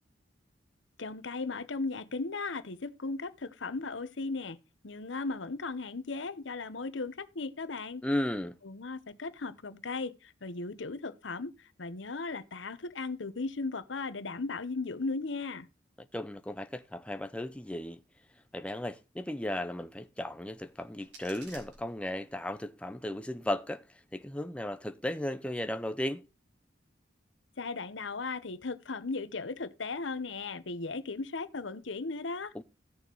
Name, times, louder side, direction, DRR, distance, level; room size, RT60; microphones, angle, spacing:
voice 1, 1.0-4.6 4.8-8.0 8.6-15.7 27.6-32.5, left 3 dB, 80° left, 0.9 m, -37 dB
voice 2, 8.0-8.6 16.1-18.0 18.5-26.2 32.5-32.6, left 1 dB, 5° left, 0.6 m, -35 dB
sound 1, 20.5-22.5, right 3 dB, 70° right, 4.6 m, -54 dB
16.5 x 6.8 x 3.0 m
head